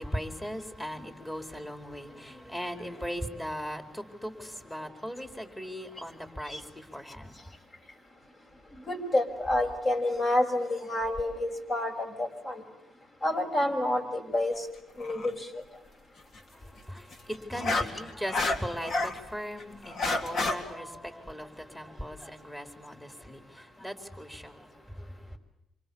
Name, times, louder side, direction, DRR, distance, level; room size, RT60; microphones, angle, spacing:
voice 1, 0.0-7.5 16.5-25.3, equal, 15° left, 4.6 m, -39 dB
voice 2, 8.9-12.6 13.2-14.7 15.0-15.6, left 1 dB, 35° left, 6.4 m, -29 dB
sound 1, 15.0-15.3 17.1-19.2 19.6-20.6, left 2 dB, 55° left, 3.4 m, -29 dB
28.0 x 27.0 x 7.3 m
cardioid pair, 90°, 0 cm